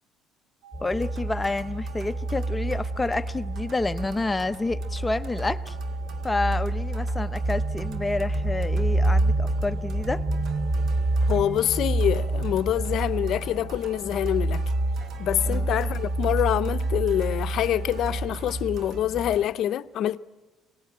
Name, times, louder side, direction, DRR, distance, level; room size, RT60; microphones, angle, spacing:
sound 1, 0.6-18.3, right 8 dB, 85° right, 1.9 m, -49 dB
sound 2, 0.7-19.4, right 2 dB, 20° right, 3.5 m, -28 dB
voice 1, 0.8-5.8 6.2-10.2 15.4-15.7, left 2 dB, 15° left, 0.8 m, -29 dB
sound 3, 0.9-19.5, right 5 dB, 55° right, 1.6 m, -47 dB
voice 2, 11.2-14.6 15.2-20.2, left 11 dB, 60° left, 0.7 m, -26 dB
24.5 x 19.0 x 8.8 m
cardioid pair, 105°, 0 cm